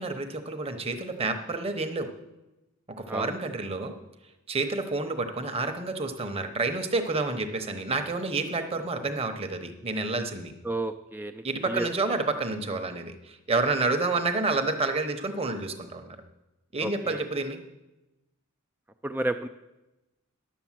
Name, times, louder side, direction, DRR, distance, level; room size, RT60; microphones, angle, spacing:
voice 1, 0.0-2.1 3.0-3.9 4.5-10.5 11.4-16.2 16.7-17.6, right 3 dB, 25° right, 6 dB, 0.9 m, -29 dB
voice 2, 10.6-11.9 16.8-17.2 19.0-19.5, right 1 dB, 10° right, 7 dB, 0.3 m, -32 dB
11.0 x 6.7 x 7.4 m, 0.99 s
head